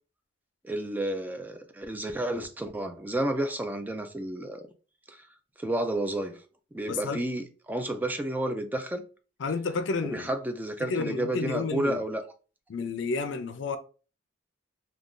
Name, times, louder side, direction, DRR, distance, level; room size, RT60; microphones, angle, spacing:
voice 1, 0.6-4.6 5.1-5.2 5.6-6.4 6.7-9.0 10.1-12.2, right 1 dB, 10° right, 0.4 m, -31 dB
voice 2, 6.9-7.2 9.4-10.3 10.8-12.0 12.7-13.8, left 4 dB, 65° left, 0.4 m, -31 dB
2.5 x 2.3 x 3.6 m
head